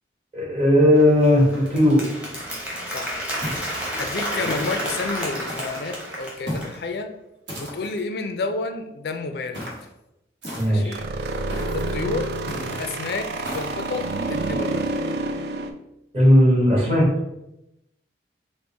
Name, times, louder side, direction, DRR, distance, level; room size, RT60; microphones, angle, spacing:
voice 1, 0.3-2.0 10.6-11.0 16.1-17.1, equal, 35° right, -4 dB, 1.1 m, -17 dB
Applause, 0.9-6.7, equal, 5° right, 0.7 m, -31 dB
sound 1, 3.4-3.9 4.4-4.9 5.5-5.9 6.5-6.8 7.5-8.0 9.5-9.9 10.4-10.9 11.5-11.9 12.5-12.8 13.4-13.8, equal, 75° right, 1.2 m, -34 dB
voice 2, 4.0-7.1 7.6-9.6 10.7-11.0 11.7-12.3 12.7-14.8, left 3 dB, 60° left, 7 dB, 0.4 m, -30 dB
sound 2, 4.3-5.9 10.9-15.7, right 2 dB, 60° right, 0.3 m, -29 dB
3.5 x 2.1 x 3.8 m, 0.88 s
head